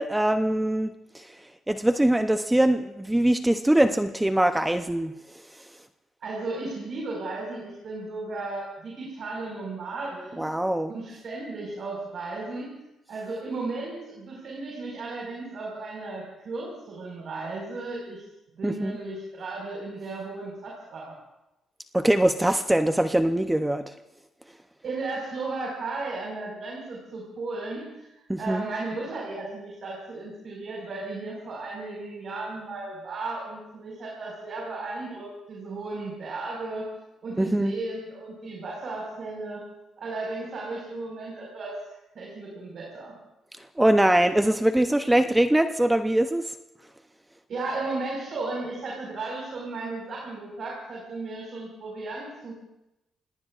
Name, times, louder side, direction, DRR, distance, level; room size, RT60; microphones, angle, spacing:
voice 1, 0.0-1.3 1.7-5.1 10.4-10.9 18.6-19.0 21.9-23.9 28.3-28.6 37.4-37.7 43.8-46.5, right 1 dB, 10° right, 8 dB, 0.7 m, -22 dB
voice 2, 6.2-10.4 10.9-12.7 13.1-18.2 18.6-21.1 24.8-36.9 37.2-39.6 40.0-43.2 47.5-52.5, right 3 dB, 55° right, -3 dB, 5.0 m, -35 dB
26.5 x 18.5 x 2.5 m, 0.94 s
cardioid pair, 90°, 0 cm